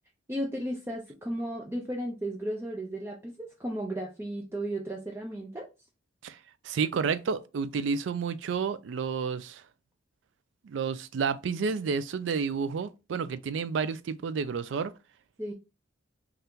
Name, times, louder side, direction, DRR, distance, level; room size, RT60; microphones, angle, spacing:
voice 1, 0.3-5.7 15.4-15.5, right 1 dB, 15° right, 0.5 m, -34 dB
voice 2, 6.6-9.6 10.6-14.9, right 5 dB, 75° right, 0.4 m, -30 dB
2.8 x 2.4 x 3.4 m
head